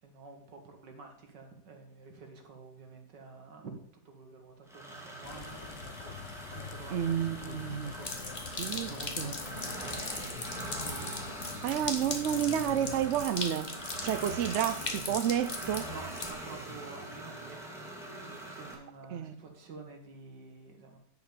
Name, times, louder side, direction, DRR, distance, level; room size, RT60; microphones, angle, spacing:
voice 1, 0.0-3.8 4.0-6.1 6.4-12.2 13.2-13.4 15.9-21.0, right 4 dB, 85° right, 2.4 m, -50 dB
sound 1, 4.7-18.7, right 1 dB, ahead, 2.3 m, -43 dB
sound 2, 5.2-13.3, left 8 dB, 60° left, 0.8 m, -46 dB
voice 2, 6.9-7.9 8.6-8.9 9.2-9.3 11.6-13.7 14.0-15.9 19.1-19.3, right 10 dB, 65° right, 0.7 m, -30 dB
sound 3, 8.0-16.3, left 2 dB, 25° left, 1.4 m, -39 dB
10.5 x 5.2 x 6.9 m
omnidirectional pair, 1.8 m